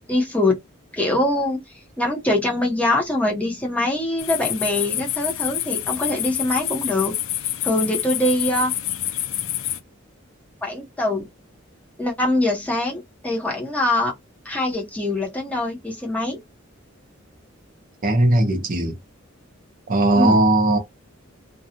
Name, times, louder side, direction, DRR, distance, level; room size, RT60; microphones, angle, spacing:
voice 1, 0.1-0.6 0.9-1.6 2.0-7.1 7.6-8.7 10.6-11.3 12.0-14.1 14.4-16.4 20.2-20.4, left 1 dB, 5° left, 0.8 m, -23 dB
sound 1, 4.2-9.8, left 12 dB, 85° left, 0.4 m, -27 dB
voice 2, 18.0-19.0 19.9-20.8, right 1 dB, 45° right, 0.6 m, -18 dB
2.6 x 2.2 x 2.8 m
head